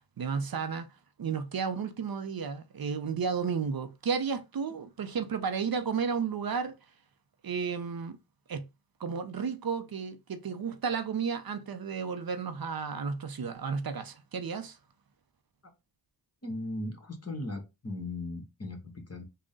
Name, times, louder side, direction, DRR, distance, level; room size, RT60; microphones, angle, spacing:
voice 1, 0.2-0.9 1.2-6.8 7.4-8.2 8.5-8.6 9.0-14.8, right 6 dB, 60° right, 0.6 m, -33 dB
voice 2, 16.4-19.2, left 2 dB, 35° left, 1.2 m, -37 dB
3.7 x 2.2 x 3.8 m
wide cardioid pair, 60°, 42 cm